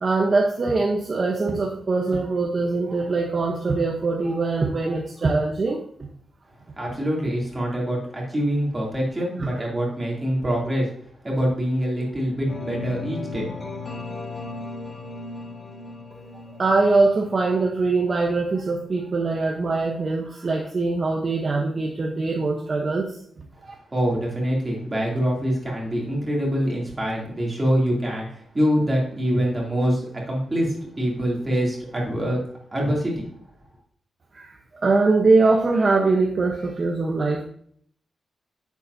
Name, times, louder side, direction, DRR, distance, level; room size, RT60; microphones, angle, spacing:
voice 1, 0.0-6.1 9.4-9.6 16.6-23.7 34.3-37.4, right 3 dB, 35° right, 1 dB, 0.9 m, -22 dB
voice 2, 6.8-10.9 11.2-13.5 13.8-13.9 23.9-32.4 32.7-33.2, equal, 20° right, -3 dB, 2.7 m, -25 dB
sound 1, 12.5-18.4, left 3 dB, 35° left, 3.3 m, -36 dB
10.0 x 7.3 x 2.7 m, 0.64 s
wide cardioid pair, 145°, 0 cm